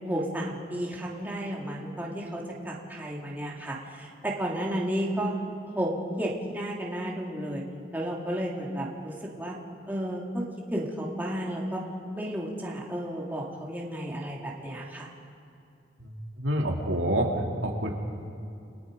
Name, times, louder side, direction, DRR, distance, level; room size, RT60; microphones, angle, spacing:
voice 1, 0.0-5.3 5.6-7.6 7.9-9.6 9.9-10.4 10.7-11.8 12.1-15.1, right 1 dB, 10° right, -3 dB, 2.4 m, -32 dB
voice 2, 16.0-17.3 17.6-17.9, right 1 dB, 75° right, 0 dB, 2.7 m, -28 dB
29.5 x 21.5 x 5.2 m, 2.6 s
head